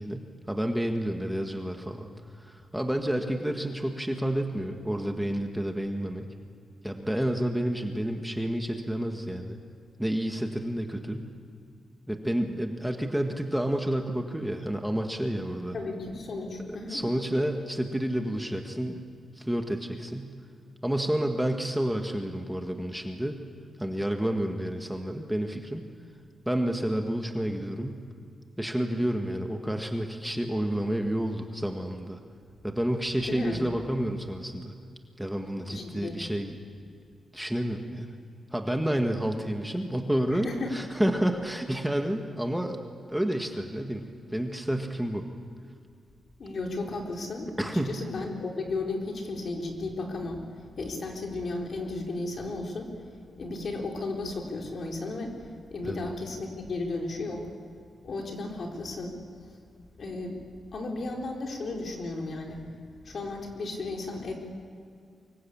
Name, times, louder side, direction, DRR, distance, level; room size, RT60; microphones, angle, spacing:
voice 1, 0.0-2.1 2.4-6.2 6.8-9.6 10.0-11.3 12.1-15.8 16.9-19.0 19.3-20.3 20.8-23.4 23.8-25.8 26.4-28.0 28.6-32.2 32.6-34.7 35.2-36.6 37.3-38.1 38.5-42.8 43.1-45.3 47.6-48.0 55.8-56.0, right 1 dB, 5° right, 4 dB, 1.7 m, -30 dB
voice 2, 15.7-17.0 33.2-33.6 35.7-36.2 40.3-40.7 46.4-50.4 50.8-52.9 53.4-55.3 55.7-57.4 58.0-59.2 60.0-60.4 60.7-62.6 63.0-64.3, left 2 dB, 55° left, 1 dB, 4.2 m, -34 dB
24.5 x 22.0 x 8.7 m, 2.3 s
wide cardioid pair, 120°, 0 cm